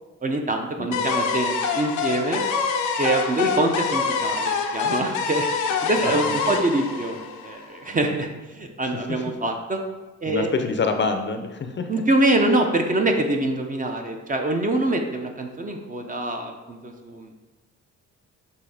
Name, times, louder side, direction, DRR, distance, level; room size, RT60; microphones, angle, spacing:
voice 1, 0.2-2.4 3.0-9.8 10.2-10.5 11.9-17.3, right 2 dB, 25° right, 3 dB, 0.8 m, -25 dB
sound 1, 0.9-7.9, left 5 dB, 90° left, 0.7 m, -26 dB
voice 2, 6.0-6.6 8.9-9.2 10.3-12.0, left 4 dB, 40° left, 6 dB, 0.6 m, -27 dB
6.7 x 2.8 x 4.9 m, 1.2 s
cardioid pair, 90°, 30 cm